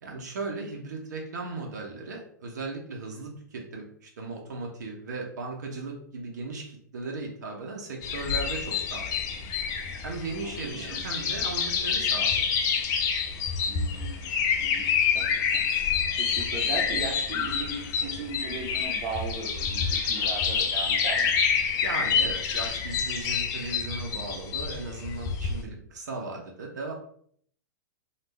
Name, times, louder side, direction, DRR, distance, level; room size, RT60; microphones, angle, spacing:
voice 1, 0.0-9.2 10.0-12.4 21.8-26.9, right 3 dB, 70° right, 0 dB, 0.8 m, -37 dB
sound 1, 8.0-25.6, left 6 dB, 35° left, 0.5 m, -28 dB
voice 2, 10.4-11.0 13.7-14.3 14.6-21.3, right 3 dB, 40° right, -1 dB, 0.9 m, -38 dB
3.3 x 2.4 x 3.1 m, 0.62 s
hypercardioid pair, 105°, 10 cm